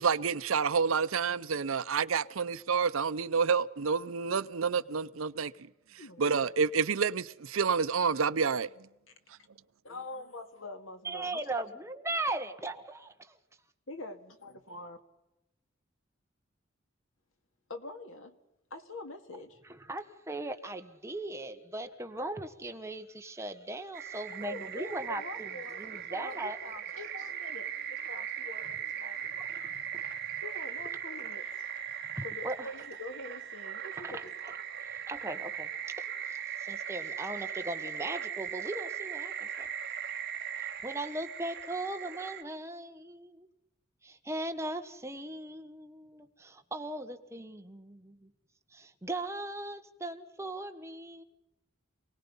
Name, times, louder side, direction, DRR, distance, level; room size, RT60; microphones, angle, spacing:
voice 1, 0.0-5.5 6.2-8.7, right 5 dB, 80° right, 0.7 m, -28 dB
voice 2, 6.0-6.3 9.8-11.5 12.1-12.2 13.9-15.0 17.7-18.4 18.7-19.6 24.4-29.5 30.4-31.7 32.2-34.4, left 2 dB, 70° left, 2.1 m, -45 dB
voice 3, 11.0-13.3 19.7-25.2 25.8-26.6 29.5-30.0 32.1-32.7 34.0-34.2 34.8-39.7 40.8-43.5 44.0-48.3 48.7-51.2, right 2 dB, 15° right, 1.3 m, -38 dB
sound 1, 23.9-42.4, right 8 dB, 50° right, 1.7 m, -39 dB
27.5 x 19.0 x 5.5 m
head